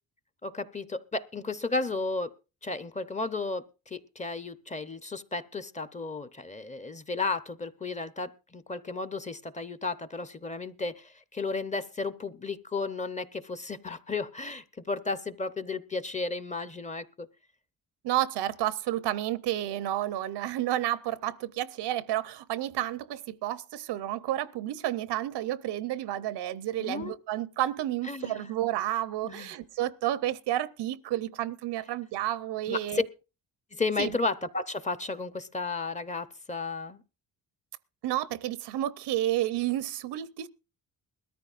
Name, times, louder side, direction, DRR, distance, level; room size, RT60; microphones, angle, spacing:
voice 1, 0.4-2.3 2.6-17.3 26.8-27.1 28.1-28.5 29.2-29.6 32.7-33.0 33.7-37.0, left 3 dB, 20° left, 0.6 m, -33 dB
voice 2, 18.0-33.0 34.0-34.2 38.0-40.5, right 13 dB, 90° right, 0.8 m, -31 dB
21.0 x 13.5 x 2.5 m
cardioid pair, 110°, 40 cm